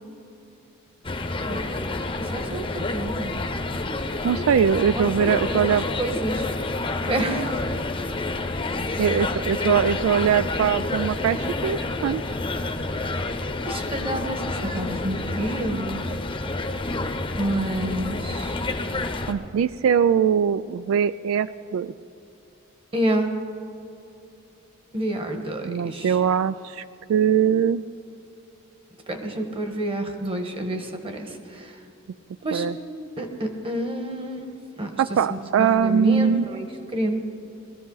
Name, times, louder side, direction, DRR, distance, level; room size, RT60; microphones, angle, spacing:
sound 1, 1.0-19.3, left 2 dB, 25° left, 0.8 m, -29 dB
voice 1, 1.5-3.3 4.9-5.1 5.3-6.5 6.8-7.6 13.6-16.1 17.4-18.6 22.9-23.3 24.9-26.2 29.1-31.8 32.4-32.7 33.2-34.9 35.3-37.2, right 1 dB, 25° right, 5 dB, 1.3 m, -29 dB
voice 2, 4.2-5.9 9.0-12.2 19.3-21.9 25.6-27.8 32.5-32.7 35.0-36.5, right 7 dB, 80° right, 15 dB, 0.3 m, -22 dB
20.5 x 14.0 x 3.9 m, 2.8 s
head